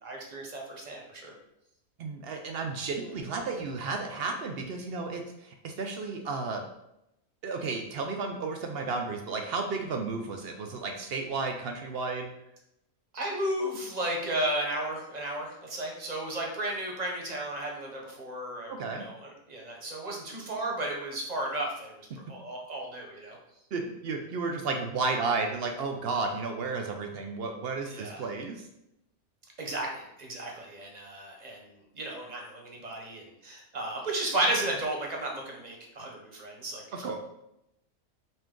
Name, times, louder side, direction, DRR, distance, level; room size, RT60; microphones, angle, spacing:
voice 1, 0.0-1.3 13.1-23.4 27.9-28.2 29.6-37.1, right 1 dB, 35° right, 0 dB, 0.9 m, -34 dB
voice 2, 2.0-6.6 7.4-12.3 18.7-19.0 23.7-28.6 37.0-37.1, right 4 dB, 65° right, 3 dB, 0.6 m, -33 dB
5.3 x 2.5 x 3.7 m, 0.83 s
omnidirectional pair, 1.4 m